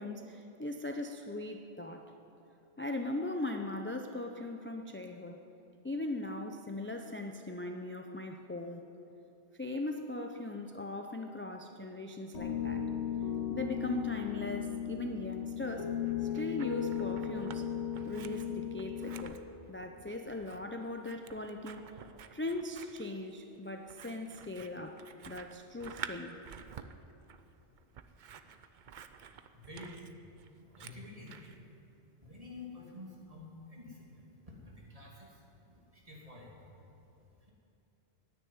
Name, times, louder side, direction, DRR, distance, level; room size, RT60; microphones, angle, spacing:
voice 1, 0.0-2.1 2.8-5.4 5.8-8.9 9.6-12.9 13.3-15.9 16.2-17.7 18.1-19.4 19.7-21.9 22.3-26.4, left 2 dB, 20° left, 4 dB, 0.3 m, -39 dB
Piano, 12.3-19.2, left 9 dB, 85° left, 2.0 m, -36 dB
Scissors, 16.1-17.6 17.9-31.6, right 7 dB, 55° right, 0.6 m, -50 dB
voice 2, 29.5-30.1 30.5-31.6 32.2-36.7, left 2 dB, 30° right, -3 dB, 2.5 m, -50 dB
9.9 x 9.8 x 9.4 m, 2.8 s
omnidirectional pair, 1.2 m